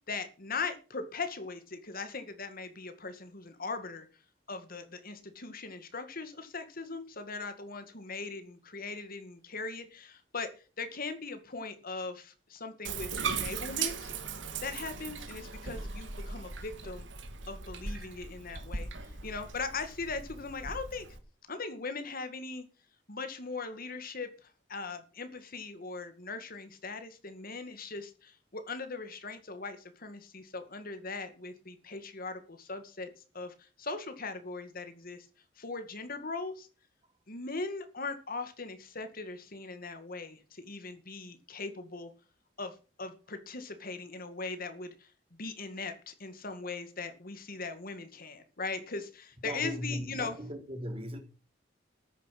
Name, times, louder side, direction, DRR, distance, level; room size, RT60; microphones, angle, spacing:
voice 1, 0.1-4.1 4.5-10.5 10.8-14.1 14.6-17.1 17.5-18.9 19.2-21.1 21.5-22.7 23.1-35.3 35.6-36.7 37.3-42.1 42.6-45.1 45.4-50.4, left 4 dB, 50° left, 2.1 m, -40 dB
Bathtub (filling or washing), 12.8-21.2, right 5 dB, 85° right, 2.5 m, -38 dB
voice 2, 49.4-51.2, equal, 30° right, 3.3 m, -38 dB
14.0 x 10.0 x 6.0 m
head